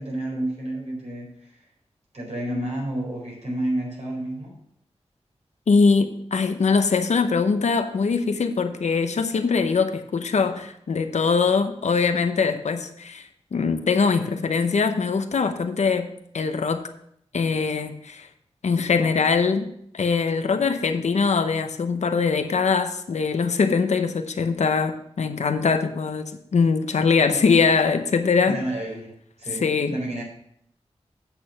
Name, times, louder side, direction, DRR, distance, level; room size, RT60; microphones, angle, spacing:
voice 1, 0.0-1.6 2.1-4.6 20.5-20.7 27.3-27.4 28.5-29.1 29.4-29.6 29.9-30.2, right 1 dB, 75° right, -3 dB, 4.6 m, -30 dB
voice 2, 5.7-16.8 17.3-18.3 18.6-28.6 29.6-29.9, left 5 dB, 90° left, 8 dB, 0.8 m, -22 dB
8.3 x 6.5 x 5.6 m, 0.71 s
wide cardioid pair, 65°, 12 cm